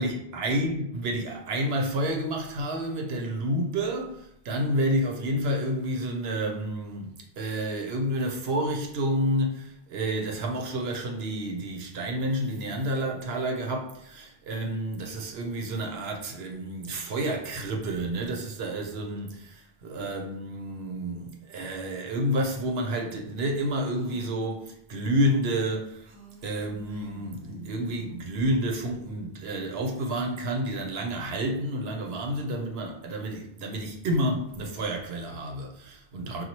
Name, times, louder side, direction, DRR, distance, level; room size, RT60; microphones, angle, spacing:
voice 1, 0.0-4.2 4.4-7.1 7.4-26.1 26.4-36.4, right 1 dB, 80° right, 0.9 m, -29 dB
Female speech woman speaking, 23.9-24.5 26.0-28.3, right 4 dB, 45° right, 0.6 m, -49 dB
4.1 x 2.3 x 2.9 m
omnidirectional pair, 1.1 m